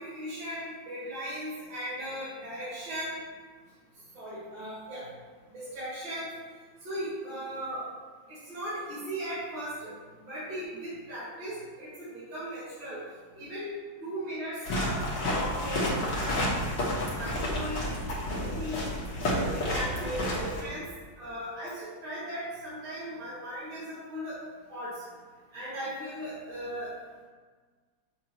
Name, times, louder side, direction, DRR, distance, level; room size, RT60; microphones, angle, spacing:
voice 1, 0.0-3.2 4.1-5.1 5.5-6.3 6.8-7.8 8.3-9.9 10.3-13.0 13.3-13.7 14.0-16.5 17.2-17.9 18.4-18.9 19.3-20.8 21.2-24.4 24.7-25.0 25.5-26.9, equal, 75° right, -13 dB, 2.9 m, -37 dB
sound 1, 14.6-20.6, left 1 dB, 80° left, 2.2 m, -30 dB
7.0 x 6.6 x 3.0 m, 1.5 s
omnidirectional pair, 2.1 m